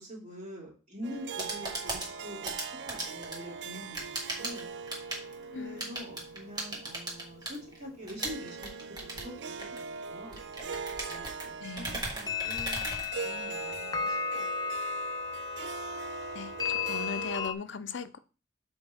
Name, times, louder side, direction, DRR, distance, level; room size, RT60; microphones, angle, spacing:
voice 1, 0.0-2.6 2.9-4.7 5.5-8.7 9.0-9.8 10.1-10.4 11.1-11.8 12.1-14.7, equal, 40° right, -2 dB, 2.4 m, -45 dB
Harp, 1.0-17.5, right 5 dB, 75° right, 0.4 m, -42 dB
sound 1, 1.1-13.7, right 2 dB, 25° right, 1.6 m, -39 dB
sound 2, 1.8-3.8 4.1-4.2 4.4-4.5 11.4-11.5 12.3-17.5, left 6 dB, 20° left, 0.4 m, -35 dB
voice 2, 5.4-6.0 11.6-12.1 16.3-18.2, left 5 dB, 85° left, 12 dB, 0.5 m, -39 dB
7.0 x 4.5 x 3.4 m, 0.34 s
head